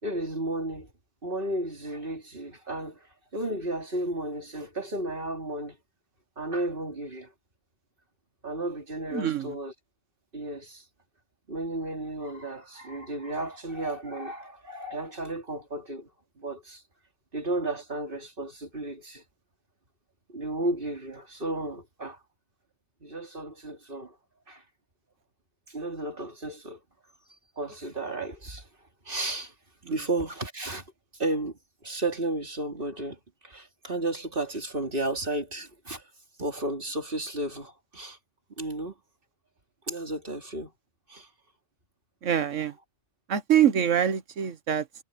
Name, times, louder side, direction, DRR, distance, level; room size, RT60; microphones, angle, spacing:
voice 1, 0.0-0.9 1.2-3.0 3.3-5.7 6.4-7.3 8.4-9.7 10.3-10.8 11.5-16.1 16.4-16.8 17.3-19.2 20.3-22.2 23.0-24.1 24.5-24.6 25.7-26.8 27.6-28.6 29.1-29.5 29.9-30.8 31.2-33.2 33.4-36.0 36.4-38.2 38.6-38.9 39.9-40.7 41.1-41.3, right 2 dB, 45° right, 3.1 m, -33 dB
voice 2, 9.1-9.6 29.8-30.0 42.2-42.7 43.3-44.9, right 9 dB, 75° right, 1.4 m, -25 dB
omnidirectional pair, 1.3 m